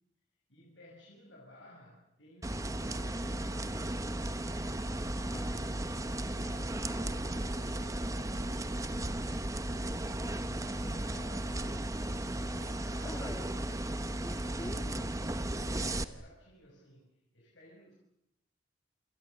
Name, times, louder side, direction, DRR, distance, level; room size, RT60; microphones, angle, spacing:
voice 1, 0.5-4.5 6.3-9.9 10.6-12.0 12.4-13.3 15.5-17.9, left 1 dB, 75° left, -2 dB, 6.1 m, -56 dB
sound 1, 2.4-16.0, right 1 dB, 15° right, 1.0 m, -35 dB
voice 2, 5.2-5.8 10.4-11.4 13.0-13.6 14.2-15.2, left 1 dB, 15° left, 7 dB, 2.1 m, -46 dB
28.0 x 27.0 x 6.5 m, 0.81 s
head